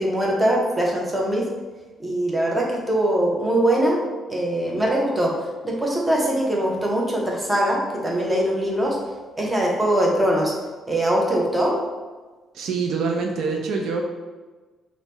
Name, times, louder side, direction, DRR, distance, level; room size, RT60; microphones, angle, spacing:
voice 1, 0.0-1.5 2.0-4.0 4.3-5.3 5.6-9.0 9.4-10.5 10.9-11.7, right 1 dB, 15° right, -2 dB, 0.7 m, -22 dB
voice 2, 12.5-14.0, right 4 dB, 75° right, 2 dB, 0.3 m, -25 dB
2.7 x 2.0 x 3.2 m, 1.3 s
cardioid pair, 90°, 0 cm